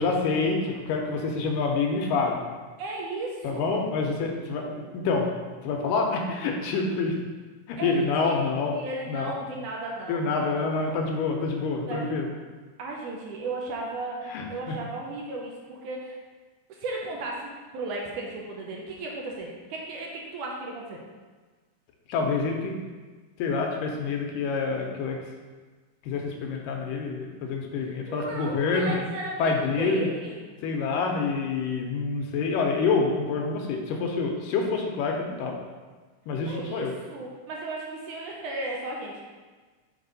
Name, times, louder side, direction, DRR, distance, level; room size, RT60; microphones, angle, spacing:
voice 1, 0.0-2.4 3.4-5.3 5.6-7.2 7.7-8.7 9.1-9.3 10.1-12.3 14.3-14.7 22.1-22.8 23.4-25.2 26.0-28.9 29.4-30.1 30.6-35.6 36.3-36.9, left 4 dB, 80° left, 1 dB, 2.3 m, -27 dB
voice 2, 2.8-3.7 4.4-4.5 7.8-11.0 11.9-12.3 12.8-16.2 16.7-21.0 27.8-30.6 36.5-39.3, right 2 dB, 75° right, -1 dB, 2.1 m, -35 dB
6.2 x 5.1 x 4.0 m, 1.4 s
omnidirectional pair, 4.0 m